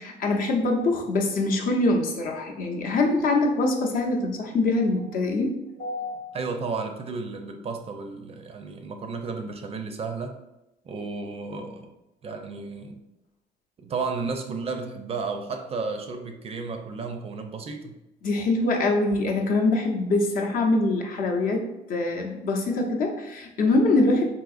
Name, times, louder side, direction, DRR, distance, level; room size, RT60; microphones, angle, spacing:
voice 1, 0.0-6.2 18.2-24.3, left 2 dB, 55° left, 2 dB, 0.7 m, -24 dB
voice 2, 6.3-10.3 10.9-11.9 12.2-13.0 13.8-18.0, right 4 dB, 35° right, 5 dB, 0.4 m, -33 dB
3.7 x 2.7 x 2.4 m, 0.94 s
cardioid pair, 110°, 17 cm